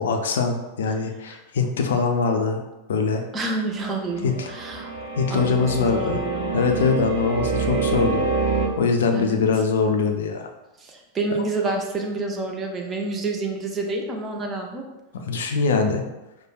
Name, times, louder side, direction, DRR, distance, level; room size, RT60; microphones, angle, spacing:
voice 1, 0.0-2.6 2.9-3.2 4.2-4.5 5.2-6.2 6.5-8.2 8.8-10.5 15.1-16.0, left 5 dB, 60° left, 4 dB, 0.4 m, -22 dB
voice 2, 3.3-4.9 5.3-6.6 9.1-9.4 10.8-14.9, right 3 dB, 20° right, 2 dB, 0.5 m, -28 dB
sound 1, 4.2-8.7, right 4 dB, 50° right, 1.2 m, -26 dB
4.8 x 2.2 x 2.3 m, 1.0 s
figure-of-eight pair, 90°, 0 cm